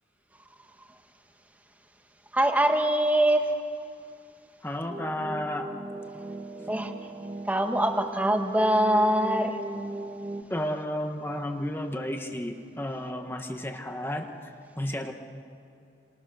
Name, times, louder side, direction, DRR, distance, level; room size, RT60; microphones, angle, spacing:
voice 1, 2.3-3.5 6.7-6.9 7.5-9.6, right 1 dB, 10° right, 4 dB, 1.6 m, -23 dB
voice 2, 4.6-5.6 6.6-6.7 10.5-14.3 14.8-15.1, left 1 dB, 15° left, 4 dB, 1.5 m, -32 dB
sound 1, 4.9-10.4, right 2 dB, 30° right, 1.8 m, -38 dB
29.0 x 27.5 x 6.5 m, 2.5 s
head